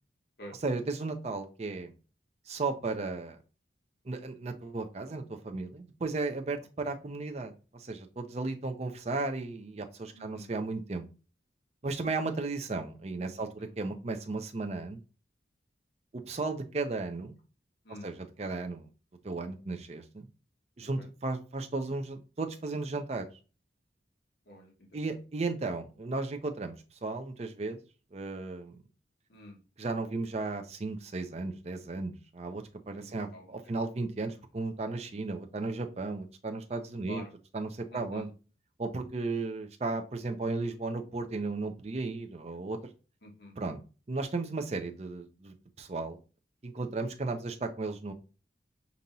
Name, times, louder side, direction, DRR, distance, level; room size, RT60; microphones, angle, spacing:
voice 1, 0.6-1.9 2.5-3.4 4.1-11.1 11.8-15.0 16.1-17.3 18.0-18.9 19.2-20.3 20.8-23.3 24.9-26.7 27.0-27.8 28.1-28.8 29.8-37.2 37.5-38.3 38.8-42.8 43.6-43.8 44.1-46.2 46.6-48.1, right 3 dB, 35° right, 5 dB, 0.5 m, -35 dB
voice 2, 10.1-10.5 13.4-13.7 17.8-18.1 20.8-21.1 24.5-25.2 29.3-29.6 33.0-33.8 37.0-37.3 37.9-38.3 43.2-43.5 47.5-47.6, left 1 dB, 60° left, 0 dB, 1.3 m, -49 dB
5.2 x 2.9 x 2.6 m, 0.34 s
head